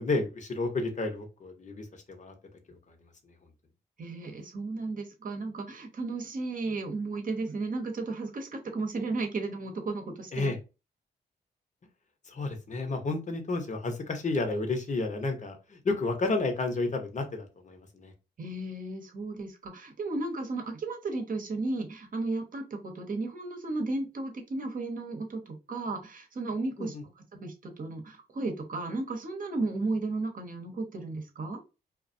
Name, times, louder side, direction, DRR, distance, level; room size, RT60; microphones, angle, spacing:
voice 1, 0.0-2.3 2.7-2.8 3.2-3.3 10.3-10.6 12.3-18.1 26.8-27.0, left 3 dB, 40° left, 0.8 m, -31 dB
voice 2, 4.0-10.5 18.4-26.9 27.3-31.6, right 3 dB, 50° right, 0.8 m, -34 dB
2.3 x 2.1 x 2.5 m
supercardioid pair, 50°, 18 cm